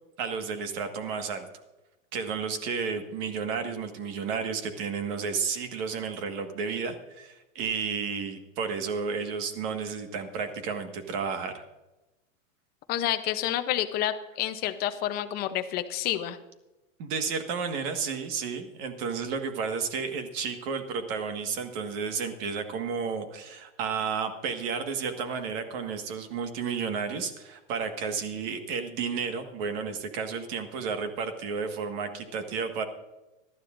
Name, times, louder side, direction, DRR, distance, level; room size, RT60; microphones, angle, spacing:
voice 1, 0.2-1.5 2.1-11.6 17.0-32.8, right 5 dB, 45° right, 7 dB, 1.6 m, -32 dB
voice 2, 12.9-16.4, left 12 dB, 25° left, 9 dB, 0.6 m, -29 dB
19.0 x 12.5 x 2.5 m, 1.0 s
supercardioid pair, 155°, 40 cm